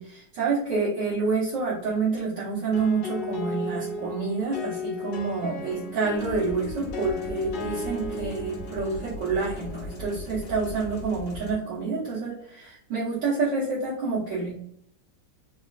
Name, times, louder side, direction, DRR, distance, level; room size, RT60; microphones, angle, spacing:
voice 1, 0.0-14.5, right 4 dB, 65° right, -8 dB, 1.7 m, -28 dB
sound 1, 2.7-12.3, left 2 dB, 65° left, 1.6 m, -36 dB
sound 2, 6.1-11.5, equal, 40° left, 1.4 m, -40 dB
4.2 x 2.4 x 2.3 m, 0.66 s
omnidirectional pair, 2.2 m